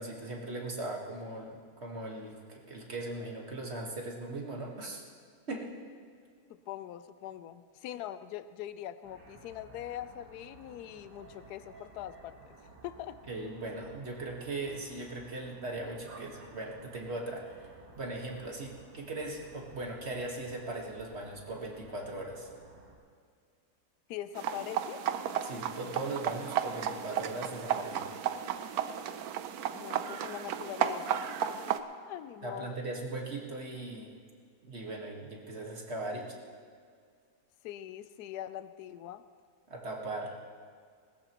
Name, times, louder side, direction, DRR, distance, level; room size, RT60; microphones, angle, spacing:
voice 1, 0.0-5.0 5.5-5.7 13.3-22.5 25.4-28.1 32.4-34.1 34.6-36.3 39.7-40.3, right 2 dB, 40° right, -1 dB, 1.7 m, -39 dB
voice 2, 6.7-12.6 12.8-13.2 24.1-25.0 29.7-31.2 32.1-32.8 37.6-39.2, left 12 dB, 80° left, 13 dB, 1.1 m, -42 dB
sound 1, 9.0-23.0, right 3 dB, 90° right, 2.2 m, -55 dB
sound 2, 24.4-31.8, right 9 dB, 70° right, 1.1 m, -34 dB
20.0 x 14.0 x 3.0 m, 2.1 s
omnidirectional pair, 1.7 m